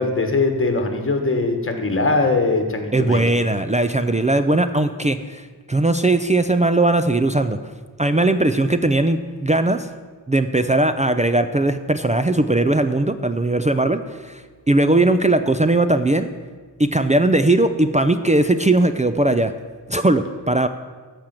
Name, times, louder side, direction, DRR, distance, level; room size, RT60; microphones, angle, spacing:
voice 1, 0.0-3.2, left 3 dB, 30° left, 5 dB, 1.4 m, -21 dB
voice 2, 2.9-7.6 8.0-9.9 10.3-14.4 14.7-16.3 16.8-19.5 19.9-20.7, right 2 dB, 20° right, 9 dB, 0.4 m, -19 dB
13.0 x 5.1 x 7.5 m, 1.4 s
wide cardioid pair, 130°, 42 cm